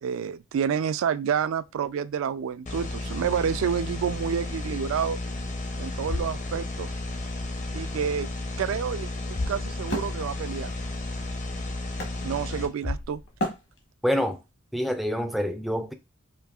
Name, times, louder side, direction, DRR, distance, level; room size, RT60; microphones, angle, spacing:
voice 1, 0.0-5.2 5.8-6.9 7.7-8.3 8.6-10.7 12.2-13.2, right 7 dB, 80° right, 0.3 m, -29 dB
sound 1, 2.7-12.7, left 2 dB, 35° left, 0.6 m, -33 dB
sound 2, 5.9-7.7 7.9-8.6 8.9-9.0 9.3-10.3 10.6-10.7 11.3-11.4 12.4-12.5 12.8-13.8, left 2 dB, 85° left, 1.2 m, -39 dB
Wood, 9.9-12.8 13.4-14.3, equal, 55° left, 1.1 m, -36 dB
voice 2, 14.0-14.4 14.7-15.9, equal, ahead, 0.3 m, -26 dB
5.0 x 2.6 x 2.3 m
head